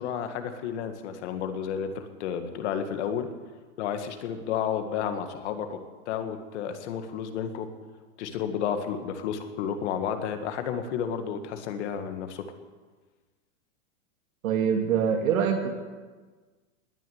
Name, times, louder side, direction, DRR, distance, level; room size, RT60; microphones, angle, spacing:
voice 1, 0.0-3.3 3.8-5.8 6.1-7.7 8.2-12.4, left 8 dB, 55° left, 8 dB, 1.9 m, -31 dB
voice 2, 14.4-15.7, right 7 dB, 85° right, 3 dB, 2.4 m, -24 dB
20.0 x 6.8 x 9.4 m, 1.4 s
supercardioid pair, 160°, 41 cm